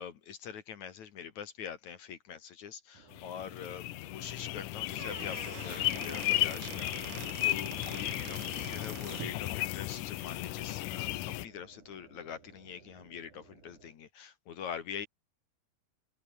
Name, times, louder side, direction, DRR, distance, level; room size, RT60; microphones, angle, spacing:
voice 1, 0.0-15.1, left 8 dB, 55° left, 2.5 m, -44 dB
sound 1, 2.9-14.0, right 4 dB, 50° right, 6.9 m, -59 dB
sound 2, 3.1-11.5, left 17 dB, 85° left, 1.8 m, -35 dB
Squeak / Wood, 4.8-9.4, right 21 dB, 85° right, 2.5 m, -46 dB
omnidirectional pair, 4.6 m